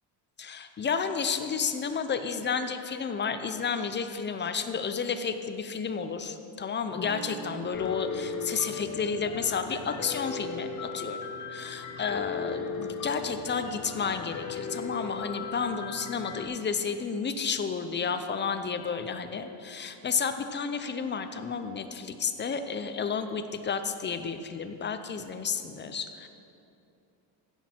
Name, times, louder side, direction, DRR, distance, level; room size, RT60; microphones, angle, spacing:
voice 1, 0.4-11.2 11.5-26.3, left 6 dB, 25° left, 8 dB, 0.5 m, -31 dB
sound 1, 6.9-12.4, right 2 dB, 10° left, 1.9 m, -46 dB
Piano, 7.7-16.5, left 5 dB, 40° left, 0.9 m, -37 dB
16.0 x 6.3 x 4.4 m, 2.7 s
cardioid pair, 125°, 45 cm